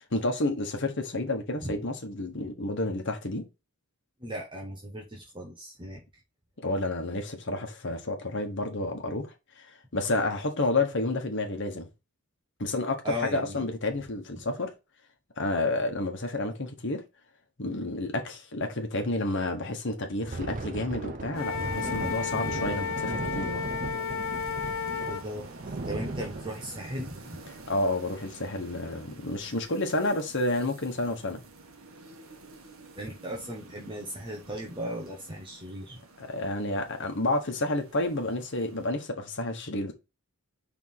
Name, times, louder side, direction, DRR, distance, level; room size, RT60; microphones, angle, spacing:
voice 1, 0.1-3.5 6.6-9.6 9.9-11.9 12.6-14.7 15.4-17.0 17.6-23.6 27.7-31.4 36.2-39.9, left 2 dB, 55° left, 1.3 m, -30 dB
voice 2, 4.2-6.0 13.0-13.6 25.1-25.5 25.9-27.4 33.0-36.0, equal, 20° right, 1.1 m, -37 dB
Thunder, 20.1-29.1 29.5-29.7 30.1-30.3 30.9-31.4, right 3 dB, 35° right, 0.5 m, -38 dB
Wind instrument woodwind instrument, 21.3-25.2, left 7 dB, 90° left, 0.6 m, -32 dB
sound 1, 21.3-38.9, right 3 dB, 65° right, 1.3 m, -49 dB
4.7 x 3.6 x 5.5 m
head